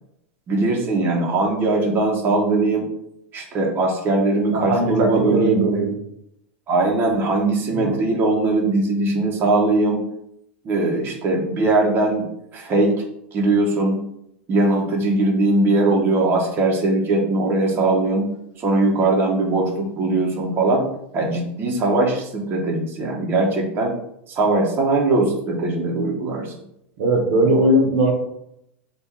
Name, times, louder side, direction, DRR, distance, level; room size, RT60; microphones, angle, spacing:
voice 1, 0.5-2.9 3.3-5.5 6.7-10.0 10.6-12.3 12.5-12.9 13.3-14.0 14.5-18.3 18.6-20.9 21.1-23.9 24.3-26.5, right 2 dB, 35° right, -1 dB, 1.1 m, -20 dB
voice 2, 4.5-5.9 27.0-28.1, right 1 dB, 65° right, 1 dB, 1.0 m, -18 dB
3.5 x 2.6 x 4.5 m, 0.78 s
hypercardioid pair, 100°, 7 cm